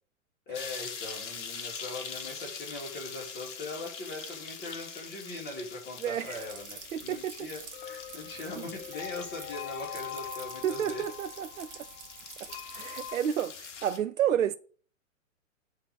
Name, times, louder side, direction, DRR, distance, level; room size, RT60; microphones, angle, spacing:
sound 1, 0.5-14.0, left 6 dB, 60° left, 1.4 m, -44 dB
voice 1, 0.5-11.0, left 2 dB, 25° left, 2.7 m, -41 dB
voice 2, 6.0-6.4 6.9-7.5 10.6-11.7 12.8-14.6, right 10 dB, 80° right, 0.5 m, -30 dB
sound 2, 6.3-13.1, right 7 dB, 30° right, 1.3 m, -48 dB
sound 3, 7.7-13.2, left 10 dB, 45° left, 1.3 m, -43 dB
7.5 x 3.3 x 6.2 m
hypercardioid pair, 110°, 40 cm